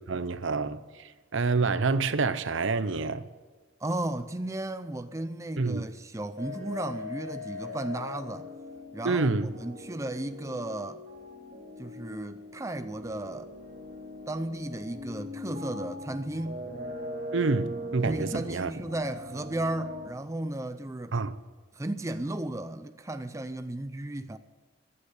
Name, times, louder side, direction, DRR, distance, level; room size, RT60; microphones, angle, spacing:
voice 1, 0.0-3.2 5.6-5.9 9.0-9.5 17.3-18.7 21.1-21.4, right 3 dB, 70° right, 0.7 m, -28 dB
voice 2, 3.8-8.5 8.9-9.3 9.6-11.0 11.8-13.5 14.3-16.7 18.0-21.2 21.7-24.4, right 1 dB, 15° right, 0.5 m, -34 dB
sound 1, 6.4-20.1, left 1 dB, 45° right, 3.2 m, -40 dB
15.0 x 9.8 x 9.9 m
head